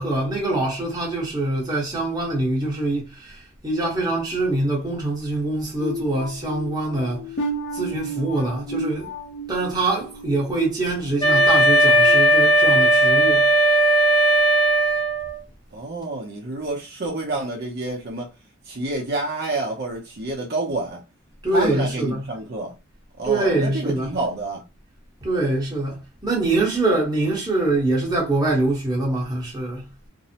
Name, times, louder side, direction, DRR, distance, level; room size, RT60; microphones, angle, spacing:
voice 1, 0.0-7.3 7.7-9.1 9.5-13.4 21.4-22.2 23.2-24.1 25.2-29.8, right 2 dB, 20° right, 1.0 m, -24 dB
sound 1, 5.8-11.5 11.9-12.2 12.7-12.9, right 1 dB, 60° left, 0.5 m, -33 dB
Wind instrument woodwind instrument, 11.2-15.4, right 1 dB, 20° left, 0.7 m, -17 dB
voice 2, 15.7-18.3 18.6-21.0 21.5-22.8 23.2-24.6, right 2 dB, 50° right, 0.6 m, -28 dB
2.6 x 2.0 x 2.7 m
head